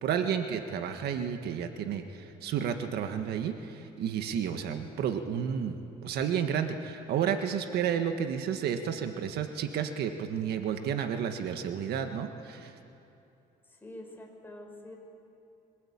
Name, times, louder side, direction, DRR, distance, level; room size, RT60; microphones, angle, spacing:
voice 1, 0.0-5.8 6.0-12.7, right 8 dB, 70° right, 7 dB, 1.6 m, -31 dB
voice 2, 13.8-15.0, left 1 dB, 10° left, 0 dB, 5.7 m, -46 dB
25.0 x 18.0 x 8.8 m, 2.8 s
cardioid pair, 110°, 17 cm